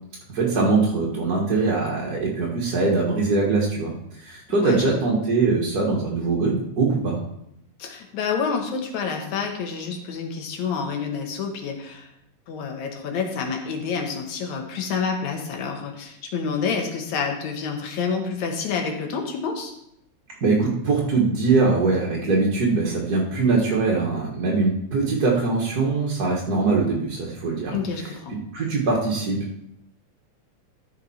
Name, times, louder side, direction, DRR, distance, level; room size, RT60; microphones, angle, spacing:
voice 1, 0.3-7.2 20.4-27.7 28.0-28.1 28.5-29.4, right 3 dB, 45° right, -3 dB, 1.3 m, -22 dB
voice 2, 4.5-4.8 7.8-12.1 12.5-19.7 27.7-28.4, left 5 dB, 75° left, 3 dB, 2.7 m, -28 dB
14.0 x 5.5 x 4.2 m, 0.78 s
omnidirectional pair, 3.4 m